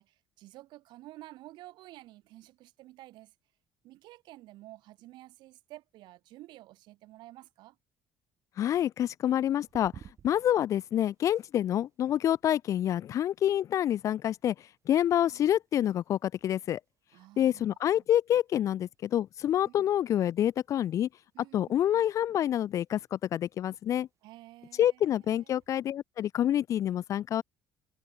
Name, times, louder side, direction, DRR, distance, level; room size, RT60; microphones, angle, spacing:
voice 1, 0.0-3.3 3.8-7.7 15.2-15.4 17.1-18.0 19.6-19.9 21.3-21.8 24.2-25.5, right 17 dB, 75° right, 5.1 m, -51 dB
voice 2, 8.6-9.9 10.2-14.5 14.9-16.8 17.4-21.1 21.5-24.1 24.8-27.4, left 11 dB, 45° left, 0.4 m, -27 dB
sound 1, 9.6-25.7, right 8 dB, 40° right, 4.2 m, -61 dB
cardioid pair, 155°, 8 cm